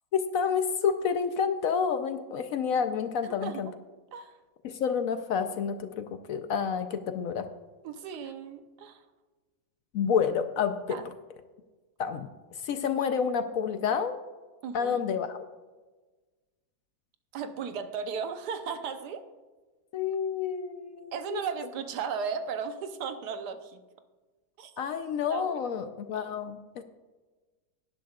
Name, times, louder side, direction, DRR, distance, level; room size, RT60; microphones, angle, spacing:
voice 1, 0.1-3.7 4.6-7.5 9.9-11.0 12.0-12.3 12.6-14.2 14.7-15.4 19.9-21.4 24.8-26.8, left 7 dB, 70° left, 9 dB, 0.9 m, -29 dB
voice 2, 3.2-3.8 4.1-4.3 7.8-9.0 10.9-11.1 14.6-15.0 17.3-19.2 21.1-23.8 24.6-24.8 25.3-25.6 26.1-26.3, right 6 dB, 80° right, 8 dB, 1.3 m, -36 dB
18.0 x 10.5 x 2.3 m, 1.3 s
omnidirectional pair, 1.7 m